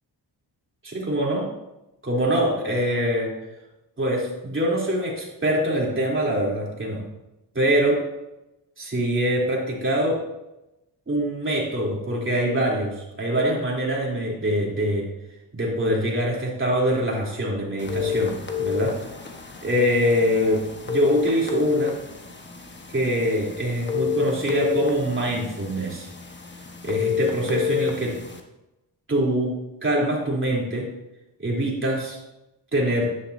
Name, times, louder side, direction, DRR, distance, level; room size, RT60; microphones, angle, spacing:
voice 1, 0.8-1.4 2.0-3.3 4.0-7.1 7.6-8.0 8.8-10.2 11.1-15.1 15.5-18.9 19.6-22.0 22.9-26.1 26.8-28.2 29.1-29.5 29.8-30.9 31.4-32.2 32.7-33.1, equal, 30° right, -3 dB, 3.5 m, -24 dB
sound 1, 17.8-28.4, left 8 dB, 25° left, 1.4 m, -29 dB
11.5 x 10.0 x 2.8 m, 0.94 s
cardioid pair, 80°, 41 cm